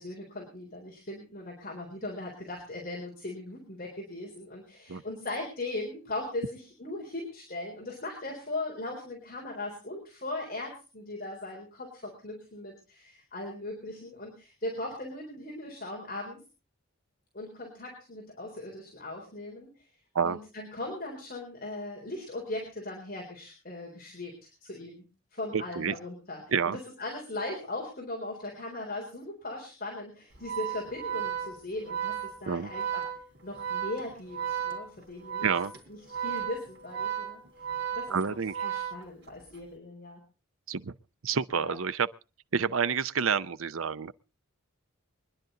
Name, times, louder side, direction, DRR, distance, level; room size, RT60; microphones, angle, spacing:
voice 1, 0.0-16.4 17.3-19.9 20.2-33.0 33.4-35.5 35.9-37.4 37.9-40.2 41.5-41.8, left 2 dB, 45° left, 3.9 m, -39 dB
voice 2, 25.5-25.9 26.5-26.8 32.5-32.7 35.4-35.7 38.1-38.5 40.7-40.9 41.2-42.1 42.5-44.1, right 6 dB, 75° right, 0.6 m, -28 dB
Organ, 30.3-39.5, right 9 dB, 55° right, 3.2 m, -35 dB
24.0 x 10.5 x 3.9 m
head